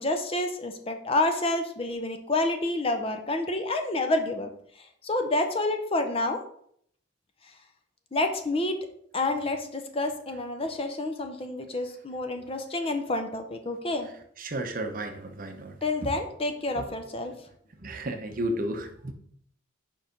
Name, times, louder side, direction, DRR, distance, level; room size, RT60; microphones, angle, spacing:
voice 1, 0.0-4.5 5.0-6.4 8.1-8.8 9.1-14.1 15.8-17.3, left 2 dB, 30° left, 6 dB, 0.6 m, -28 dB
voice 2, 14.4-16.1 16.8-16.9 17.8-19.1, right 1 dB, 45° right, 6 dB, 0.8 m, -33 dB
5.4 x 4.7 x 5.1 m, 0.66 s
head